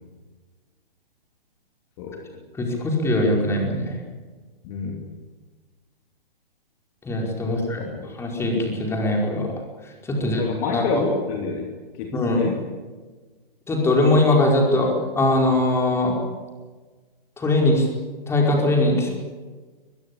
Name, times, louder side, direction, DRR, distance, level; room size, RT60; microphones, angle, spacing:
voice 1, 2.6-4.0 7.0-7.8 8.2-9.5 10.0-10.4 10.7-11.0 12.1-12.4 13.7-16.2 17.4-17.9 18.3-19.1, left 1 dB, 10° left, 0 dB, 5.0 m, -21 dB
voice 2, 4.6-5.0 7.4-8.1 10.2-11.7 12.0-12.5, left 5 dB, 30° left, 2 dB, 3.1 m, -29 dB
23.0 x 21.0 x 8.7 m, 1.4 s
figure-of-eight pair, 130°, 29 cm